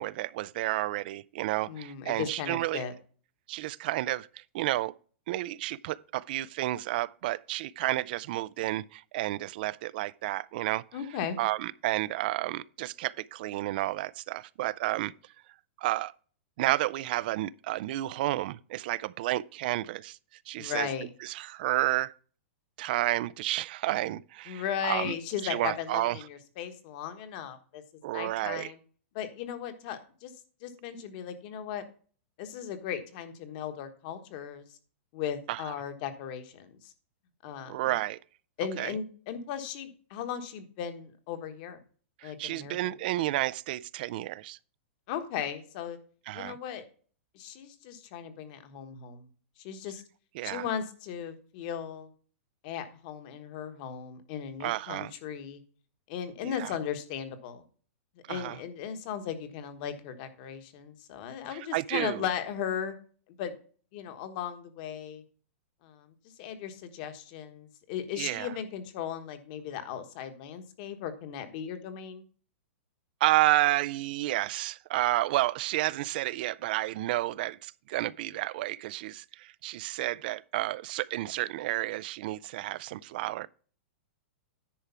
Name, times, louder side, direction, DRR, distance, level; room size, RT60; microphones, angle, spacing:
voice 1, 0.0-2.8 3.5-4.9 5.3-10.8 11.4-15.1 15.8-16.1 16.6-20.2 20.5-20.9 21.2-22.1 22.8-25.1 25.4-26.2 28.0-28.7 35.5-35.6 37.7-38.2 38.8-38.9 42.2-44.6 46.3-46.6 50.3-50.6 54.6-55.1 56.4-56.7 58.3-58.6 61.5-62.2 68.2-68.5 73.2-83.5, right 16 dB, 45° right, 0.4 m, -31 dB
voice 2, 1.7-2.9 10.9-11.4 20.6-21.1 24.5-27.8 28.1-28.8 29.1-30.3 30.6-31.8 32.4-34.7 35.1-36.9 37.4-38.0 38.6-41.8 42.2-42.8 45.1-46.0 46.3-46.8 47.3-49.3 49.6-50.0 50.4-52.1 52.6-55.6 56.1-57.6 58.3-62.9 63.3-63.5 63.9-65.2 65.8-72.2, left 8 dB, 40° left, 1.3 m, -37 dB
10.0 x 4.7 x 5.7 m
supercardioid pair, 160°, 7 cm